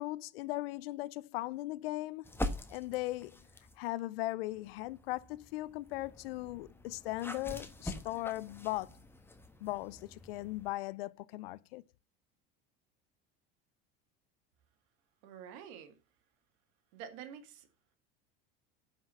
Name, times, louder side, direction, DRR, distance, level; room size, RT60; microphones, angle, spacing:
voice 1, 0.0-2.3 2.7-3.4 3.8-9.0 9.6-11.8, left 18 dB, 80° left, 0.7 m, -38 dB
sound 1, 2.2-3.8 4.5-10.7, left 1 dB, 10° left, 1.5 m, -44 dB
voice 2, 15.2-16.0 16.9-17.7, right 8 dB, 70° right, 2.1 m, -48 dB
11.5 x 6.2 x 5.5 m
supercardioid pair, 95°, 29 cm